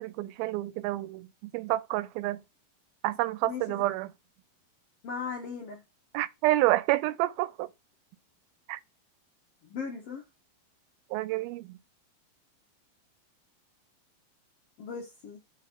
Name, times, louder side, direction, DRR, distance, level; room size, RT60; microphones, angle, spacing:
voice 1, 0.0-2.4 3.0-4.1 6.1-7.7 8.7-8.8 11.1-11.8, right 17 dB, 85° right, 2.4 m, -29 dB
voice 2, 5.0-5.8 9.6-10.2 14.8-15.4, left 5 dB, 65° left, 1.6 m, -37 dB
5.4 x 4.8 x 5.8 m
omnidirectional pair, 4.2 m